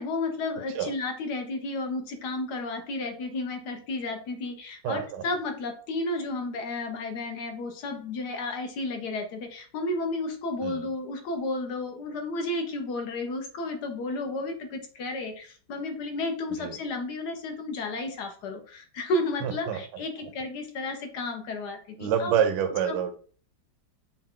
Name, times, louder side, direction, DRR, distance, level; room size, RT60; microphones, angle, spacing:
voice 1, 0.0-22.3 22.9-23.0, left 2 dB, 65° left, 4 dB, 1.4 m, -32 dB
voice 2, 4.8-5.2 10.6-10.9 16.6-16.8 19.4-19.8 22.0-23.2, right 8 dB, 75° right, 7 dB, 1.3 m, -27 dB
5.6 x 2.3 x 3.6 m, 0.42 s
omnidirectional pair, 2.0 m